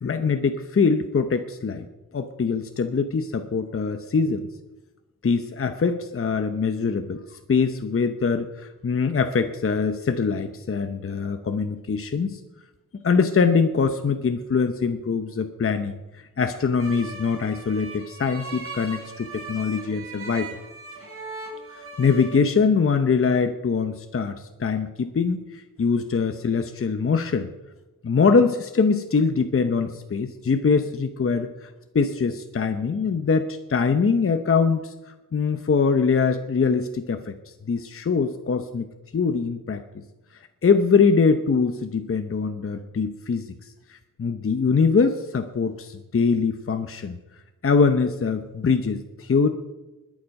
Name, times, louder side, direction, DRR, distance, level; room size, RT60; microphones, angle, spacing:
voice 1, 0.0-1.9 2.1-4.5 5.2-12.4 13.0-20.6 21.8-27.5 28.0-34.9 35.3-38.9 39.1-40.0 40.6-43.5 43.9-47.2 47.6-49.5, left 5 dB, 45° left, 7 dB, 0.8 m, -23 dB
sound 1, 16.8-22.4, right 3 dB, 45° right, 3.3 m, -39 dB
20.5 x 7.3 x 5.3 m, 1.1 s
wide cardioid pair, 115°, 32 cm